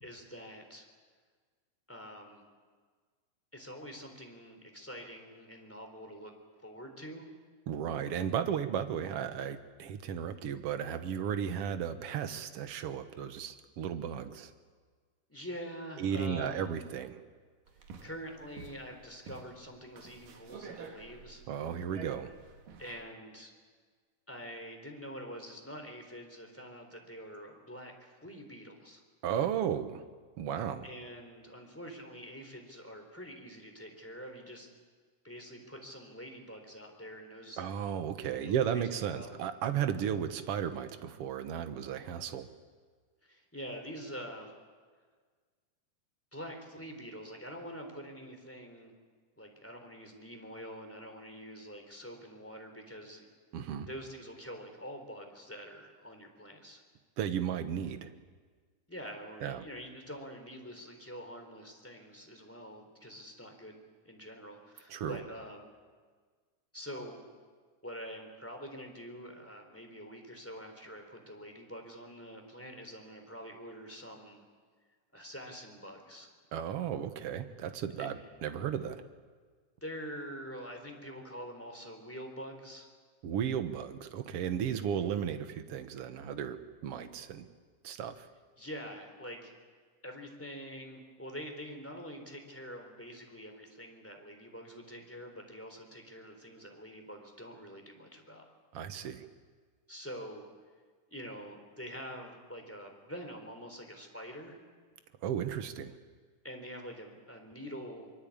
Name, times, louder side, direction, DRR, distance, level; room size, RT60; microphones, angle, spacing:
voice 1, 0.0-0.8 1.9-2.4 3.5-6.3 6.6-7.3 15.3-16.7 18.0-21.4 22.8-23.5 24.3-29.0 30.8-34.7 35.2-37.6 38.4-38.9 39.1-39.4 43.2-44.5 46.3-48.9 49.4-53.3 53.8-56.8 58.9-65.7 66.7-67.2 67.8-74.4 75.1-76.3 78.0-78.2 79.8-82.9 88.6-89.5 90.0-98.4 99.9-100.5 101.1-104.6 106.4-108.1, equal, 5° left, 3 dB, 3.6 m, -46 dB
voice 2, 7.7-14.5 16.0-17.2 21.5-22.3 29.2-30.0 30.4-30.9 37.6-42.5 53.5-53.9 57.2-58.1 59.4-59.6 64.9-65.2 76.5-79.0 83.2-87.5 87.8-88.3 98.7-99.3 105.2-106.0, right 8 dB, 55° right, 9 dB, 1.9 m, -34 dB
sound 1, 17.7-23.0, right 5 dB, 90° right, 3.6 m, -49 dB
24.5 x 23.5 x 8.7 m, 1.6 s
omnidirectional pair, 3.7 m